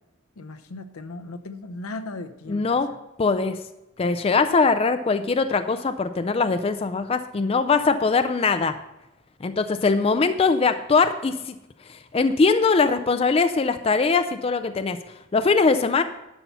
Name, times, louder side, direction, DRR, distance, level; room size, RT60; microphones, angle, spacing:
voice 1, 0.4-2.7, left 2 dB, 85° left, 10 dB, 0.7 m, -37 dB
voice 2, 2.5-2.9 3.2-3.6 4.0-8.8 9.4-11.5 11.9-15.0 15.3-16.0, left 4 dB, 25° left, 10 dB, 0.3 m, -21 dB
11.0 x 5.8 x 5.5 m, 0.93 s
head